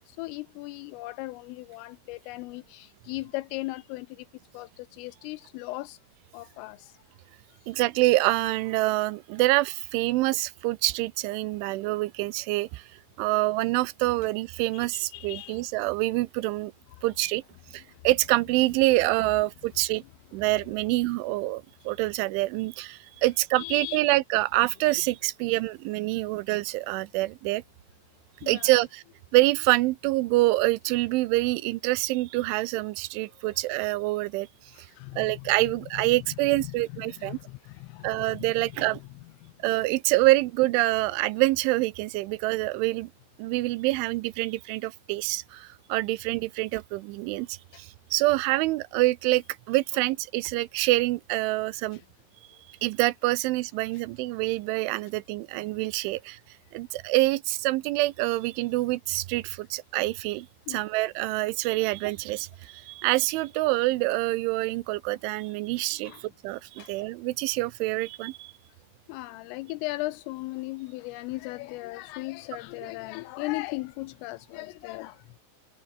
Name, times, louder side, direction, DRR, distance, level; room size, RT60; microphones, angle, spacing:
voice 1, 0.2-4.3 4.5-6.0 6.3-6.9 14.7-15.6 23.6-24.0 28.4-28.7 34.7-35.3 37.1-38.3 39.4-39.5 60.7-60.8 66.0-66.2 66.8-66.9 69.1-75.2, left 20 dB, 85° left, 3.2 m, -37 dB
voice 2, 7.7-12.8 13.2-16.7 17.0-17.4 17.7-20.0 20.3-27.6 28.5-29.0 29.3-34.5 35.2-37.4 38.0-39.0 39.6-43.1 43.4-52.0 52.7-56.4 56.7-68.5, right 19 dB, 80° right, 2.9 m, -26 dB
omnidirectional pair, 6.0 m